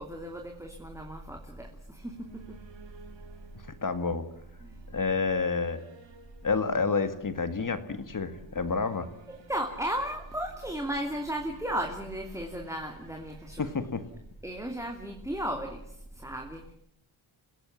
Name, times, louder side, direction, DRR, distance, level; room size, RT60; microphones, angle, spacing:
voice 1, 0.0-2.6 4.6-4.7 9.3-13.7 14.4-16.7, right 1 dB, 5° right, 2 dB, 2.9 m, -35 dB
sound 1, 1.8-14.6, right 6 dB, 65° right, 4.1 m, -55 dB
voice 2, 3.8-4.3 4.9-5.8 6.4-9.1 13.6-14.0, left 4 dB, 40° left, 10 dB, 2.1 m, -29 dB
29.5 x 17.0 x 7.3 m, 0.70 s
cardioid pair, 95°, 49 cm